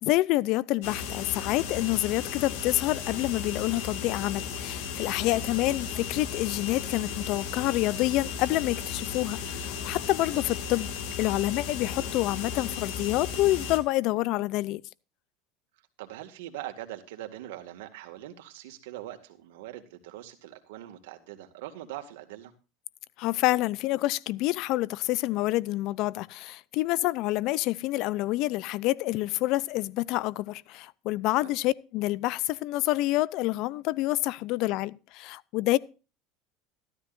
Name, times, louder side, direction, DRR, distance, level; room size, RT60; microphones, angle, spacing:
voice 1, 0.0-10.9 11.2-14.8 23.2-35.8, left 17 dB, 55° left, 0.5 m, -27 dB
sound 1, 0.8-13.8, left 6 dB, 75° left, 2.2 m, -35 dB
voice 2, 16.0-22.5 31.4-31.5, right 13 dB, 85° right, 2.0 m, -42 dB
14.0 x 13.0 x 2.6 m
supercardioid pair, 135°, 0 cm